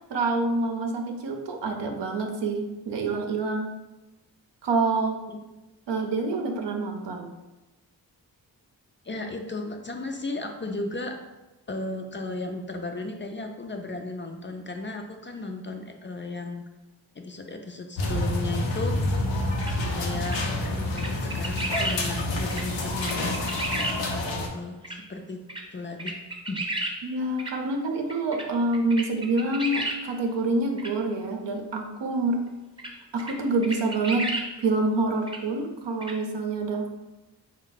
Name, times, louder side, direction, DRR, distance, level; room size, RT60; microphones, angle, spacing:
voice 1, 0.1-3.7 4.6-5.2 5.9-7.3 27.0-32.4 33.1-34.3 34.6-36.9, right 2 dB, 75° right, 4 dB, 0.7 m, -27 dB
voice 2, 9.0-11.2 11.7-16.7 17.2-19.0 19.9-23.3 24.1-24.8 25.1-25.4 25.7-26.2 26.5-26.7, left 2 dB, 30° left, 4 dB, 0.4 m, -35 dB
sound 1, 18.0-24.5, left 1 dB, 90° left, 0.6 m, -28 dB
sound 2, 19.6-19.7 20.2-20.4 21.0-22.0 22.5-22.6 23.0-24.0 24.8-25.0 25.5-25.6 26.0-26.9 27.4-27.5 28.1-28.4 28.7-30.0 30.8-30.9 32.8-32.9 33.2-33.3 33.6-34.5 35.3-35.4 36.0-36.1, right 1 dB, 10° right, 0.6 m, -31 dB
3.5 x 2.2 x 3.9 m, 1.0 s
cardioid pair, 40°, 43 cm